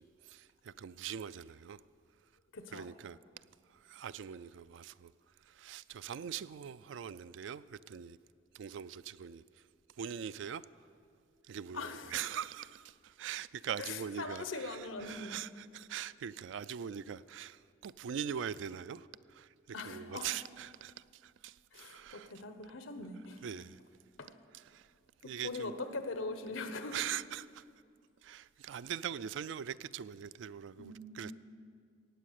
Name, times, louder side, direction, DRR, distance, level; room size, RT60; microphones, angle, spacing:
voice 1, 0.0-1.8 2.7-3.2 3.8-5.1 5.5-8.2 8.5-9.4 10.0-10.6 11.5-19.5 19.8-22.3 23.4-23.8 24.5-24.9 25.2-25.7 26.9-27.6 28.2-31.3, right 8 dB, 70° right, 0.3 m, -42 dB
voice 2, 2.5-2.9 11.7-12.2 13.8-15.3 19.7-20.4 21.7-23.4 24.2-24.3 25.4-27.0 30.8-31.3, left 3 dB, 90° left, 1.1 m, -41 dB
16.0 x 9.2 x 6.5 m
head